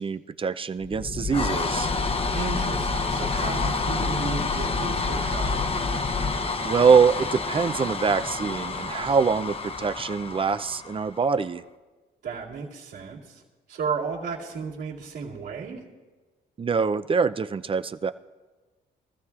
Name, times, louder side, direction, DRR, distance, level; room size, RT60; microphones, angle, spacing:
voice 1, 0.0-1.9 6.6-11.6 16.6-18.1, right 5 dB, 25° right, 11 dB, 0.4 m, -24 dB
sound 1, 0.8-11.3, left 4 dB, 30° left, 0.8 m, -28 dB
voice 2, 2.3-5.6 12.2-13.4 13.7-15.8, right 5 dB, 65° right, -9 dB, 2.5 m, -33 dB
23.0 x 14.5 x 2.4 m, 1.3 s
cardioid pair, 90°, 20 cm